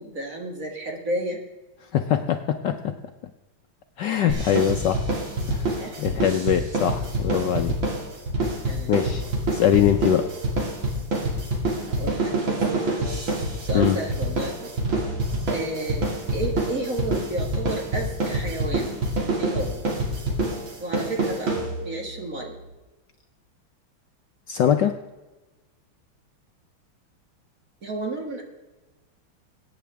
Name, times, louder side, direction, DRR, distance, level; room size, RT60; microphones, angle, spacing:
voice 1, 0.0-1.4 4.2-4.5 5.7-6.0 8.7-9.0 11.8-13.1 13.6-14.7 15.5-19.0 19.4-19.8 20.8-22.6 27.8-28.4, right 1 dB, 40° right, 1 dB, 2.1 m, -32 dB
voice 2, 1.9-2.9 4.0-5.0 5.5-7.7 8.9-9.3 9.5-10.3 13.7-14.0 24.5-24.9, left 10 dB, 70° left, 6 dB, 1.1 m, -22 dB
sound 1, 4.3-22.1, right 2 dB, 60° right, 3.1 m, -26 dB
21.5 x 9.3 x 3.4 m, 1.1 s
omnidirectional pair, 2.4 m